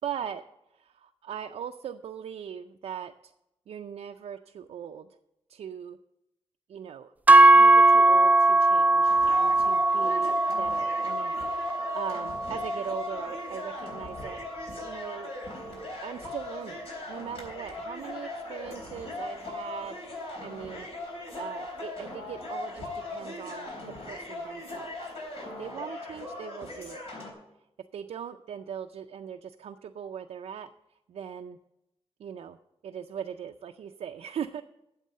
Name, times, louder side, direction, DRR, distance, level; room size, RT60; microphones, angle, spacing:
voice 1, 0.0-0.4 0.7-3.3 3.7-5.1 5.5-6.0 6.7-7.1 7.5-14.4 14.8-15.3 15.9-24.9 25.6-27.0 27.9-30.7 31.1-31.6 32.2-32.6 32.8-34.6, right 8 dB, 85° right, 5 dB, 0.4 m, -40 dB
sound 1, 7.3-15.5, right 2 dB, 15° right, 0.4 m, -22 dB
sound 2, 9.1-27.3, left 2 dB, 70° left, 3.7 m, -39 dB
9.2 x 7.3 x 7.5 m, 0.87 s
cardioid pair, 85°, 10 cm